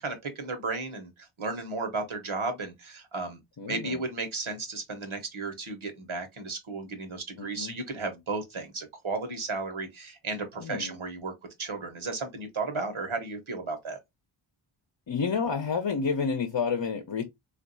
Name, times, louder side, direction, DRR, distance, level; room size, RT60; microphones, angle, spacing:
voice 1, 0.0-3.4 3.7-11.3 11.6-14.0, right 3 dB, 75° right, 1.1 m, -34 dB
voice 2, 3.6-4.0 7.4-7.8 10.6-11.0 15.1-17.2, left 5 dB, 55° left, 0.8 m, -30 dB
3.5 x 2.5 x 2.6 m
wide cardioid pair, 60°, 49 cm